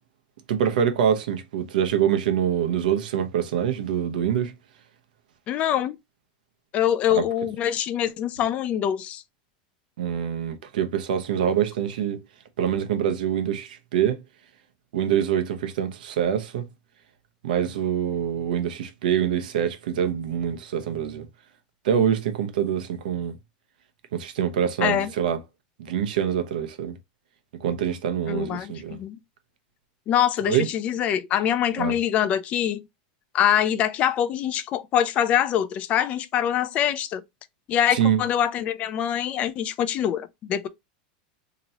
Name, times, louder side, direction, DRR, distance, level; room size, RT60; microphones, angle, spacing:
voice 1, 0.5-4.5 7.1-7.2 10.0-12.2 12.6-14.2 14.9-16.7 17.4-21.3 21.8-23.3 24.1-25.4 25.8-27.0 27.6-29.0 30.5-30.7 31.8-31.9 37.9-38.2, right 9 dB, 85° right, 0.8 m, -25 dB
voice 2, 5.5-6.0 6.7-9.2 24.8-25.1 28.3-29.2 30.1-32.8 33.3-37.2 37.7-40.7, left 10 dB, 30° left, 0.3 m, -24 dB
2.9 x 2.7 x 4.1 m
supercardioid pair, 155°, 4 cm